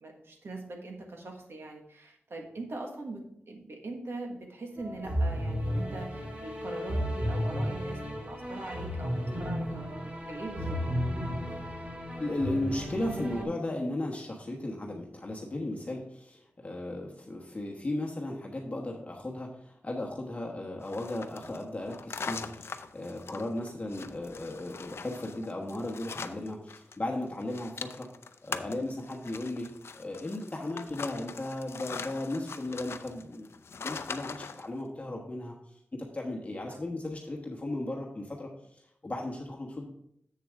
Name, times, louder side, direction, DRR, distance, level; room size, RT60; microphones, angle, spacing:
voice 1, 0.0-10.8 36.7-36.8, right 2 dB, 75° right, 2 dB, 1.6 m, -42 dB
sound 1, 4.8-13.4, equal, 30° right, 1.6 m, -33 dB
voice 2, 12.2-28.1 28.4-29.7 29.9-33.5 33.8-35.6 36.1-39.8, left 1 dB, 35° left, 0 dB, 1.2 m, -36 dB
sound 2, 20.8-27.0 27.2-34.7, left 5 dB, 80° left, 0.5 m, -42 dB
7.6 x 7.0 x 3.6 m, 0.72 s
wide cardioid pair, 90°, 4 cm